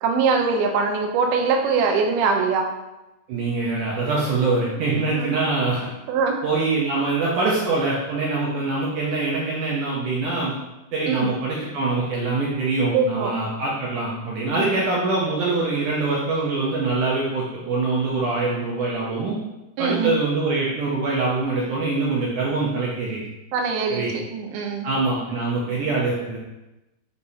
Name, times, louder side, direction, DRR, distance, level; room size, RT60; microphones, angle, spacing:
voice 1, 0.0-2.7 5.2-5.3 6.1-6.4 11.1-11.3 12.9-13.3 14.5-14.8 19.8-20.2 23.5-24.0 24.3-24.9, right 5 dB, 90° right, 2 dB, 2.7 m, -22 dB
voice 2, 3.3-5.9 6.4-10.5 10.9-19.4 19.8-23.2 23.9-24.1 24.8-26.4, right 3 dB, 70° right, -5 dB, 2.0 m, -24 dB
6.7 x 5.5 x 2.8 m, 0.98 s
omnidirectional pair, 4.4 m